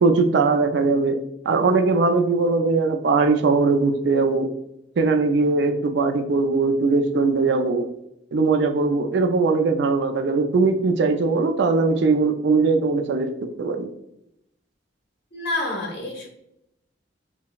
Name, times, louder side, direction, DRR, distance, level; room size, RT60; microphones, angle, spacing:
voice 1, 0.0-4.5 5.0-7.9 8.3-13.9, right 3 dB, 65° right, 6 dB, 0.4 m, -20 dB
voice 2, 15.3-16.3, left 2 dB, 60° left, 0 dB, 1.1 m, -28 dB
5.6 x 2.1 x 2.3 m, 0.82 s
head